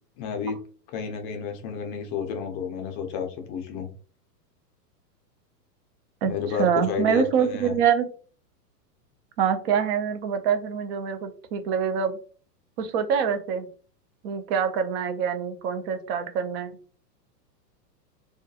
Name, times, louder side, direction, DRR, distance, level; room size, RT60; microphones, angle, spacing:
voice 1, 0.2-0.6 0.9-3.9 6.3-7.2 7.5-7.7, left 6 dB, 30° left, 4 dB, 0.5 m, -31 dB
voice 2, 6.6-8.1 9.4-12.2 12.8-13.7 14.2-16.8, right 7 dB, 40° right, 8 dB, 0.5 m, -25 dB
2.3 x 2.2 x 2.7 m, 0.40 s
hypercardioid pair, 110°, 49 cm